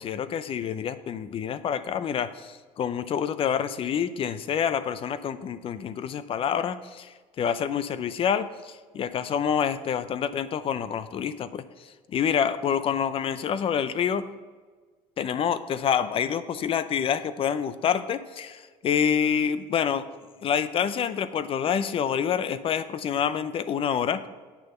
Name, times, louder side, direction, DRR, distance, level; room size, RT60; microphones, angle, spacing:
voice 1, 0.0-11.6 12.1-14.2 15.2-20.1 20.4-24.3, left 8 dB, 45° left, 13 dB, 0.6 m, -27 dB
8.5 x 6.6 x 5.5 m, 1.4 s
cardioid pair, 115°, 14 cm